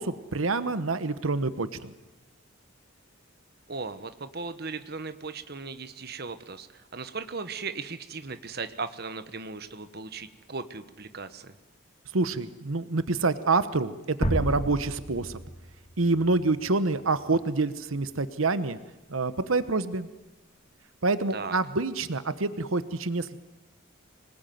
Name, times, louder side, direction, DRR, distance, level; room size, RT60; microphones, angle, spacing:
voice 1, 0.0-1.9 12.1-15.4 16.0-18.8 19.1-20.1 21.0-23.4, right 3 dB, 85° right, 13 dB, 1.1 m, -27 dB
voice 2, 3.7-11.5 21.3-21.6, right 4 dB, 50° right, 10 dB, 1.2 m, -37 dB
sound 1, 14.2-17.1, equal, 35° left, 2.5 m, -32 dB
26.0 x 19.5 x 9.3 m, 1.0 s
head